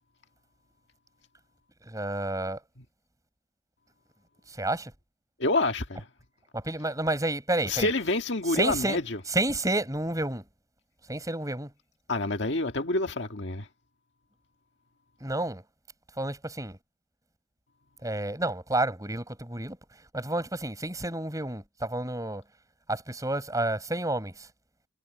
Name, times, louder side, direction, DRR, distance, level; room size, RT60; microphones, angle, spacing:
voice 1, 1.9-2.6 4.6-4.9 6.5-7.9 8.5-9.0 9.3-10.4 11.1-11.7 15.2-15.6 16.2-16.8 18.0-19.8 20.1-22.4 22.9-24.5, right 2 dB, 15° right, 7.1 m, -30 dB
voice 2, 5.4-6.1 7.6-9.2 12.1-13.7, left 2 dB, 65° left, 1.8 m, -28 dB
head